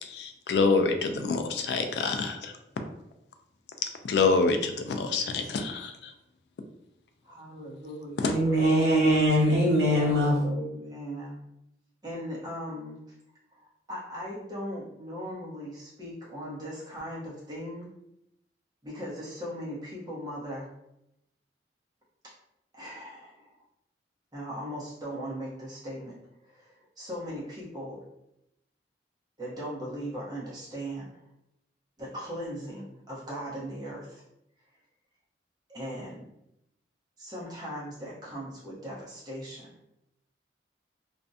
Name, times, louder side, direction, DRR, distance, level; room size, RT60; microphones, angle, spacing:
voice 1, 0.0-2.5 4.0-6.1 8.2-8.3, left 4 dB, 65° left, 6 dB, 0.3 m, -26 dB
voice 2, 7.2-8.8 9.8-11.4 12.0-13.0 13.9-17.9 18.8-20.7 22.7-23.5 24.3-26.1 26.5-28.0 29.4-31.2 32.0-34.2 35.7-36.3 37.2-39.7, equal, 20° right, -7 dB, 0.8 m, -38 dB
voice 3, 8.3-10.5, equal, 85° right, -4 dB, 1.0 m, -22 dB
2.5 x 2.1 x 2.6 m, 0.81 s
head